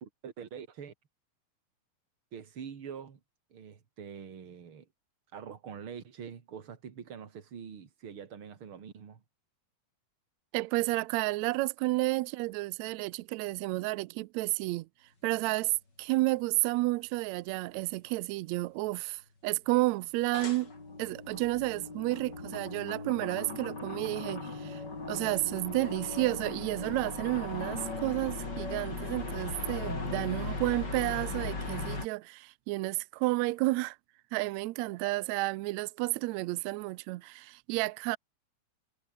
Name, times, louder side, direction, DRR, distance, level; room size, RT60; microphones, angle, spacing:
voice 1, 0.0-0.9 2.3-3.2 3.5-4.9 5.3-9.2, right 7 dB, 45° right, 2.9 m, -45 dB
voice 2, 10.5-14.9 15.2-15.7 16.0-20.7 21.0-24.8 25.1-34.0 34.3-38.2, right 20 dB, 80° right, 1.6 m, -31 dB
sound 1, 15.6-15.7 20.3-32.1, left 3 dB, 30° left, 5.1 m, -38 dB
omnidirectional pair, 3.7 m